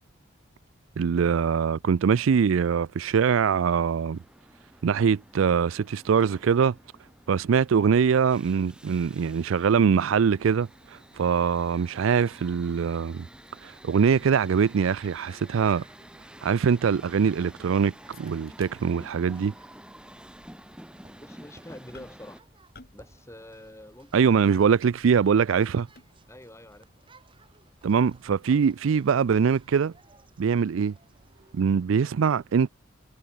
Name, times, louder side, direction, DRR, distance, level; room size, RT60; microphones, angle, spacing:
voice 1, 1.0-4.2 4.8-6.8 7.3-13.3 13.6-15.8 16.4-19.5 24.1-25.9 27.8-29.9 30.4-30.9 31.5-32.7, right 6 dB, 80° right, 0.4 m, -23 dB
sound 1, 3.6-22.4, right 1 dB, 5° right, 1.5 m, -50 dB
sound 2, 12.2-31.9, right 2 dB, 25° right, 3.4 m, -59 dB
sound 3, 15.0-16.2 16.6-16.7 17.0-17.5 18.1-19.2 19.5-19.7 20.4-20.5 21.9-22.4 22.7-23.1 23.4-25.0 25.4-26.4 27.0-29.8 30.2-30.3, left 3 dB, 50° left, 4.3 m, -56 dB
voice 2, 21.1-22.5 22.9-24.8 26.3-26.9, left 1 dB, 15° left, 4.6 m, -47 dB
head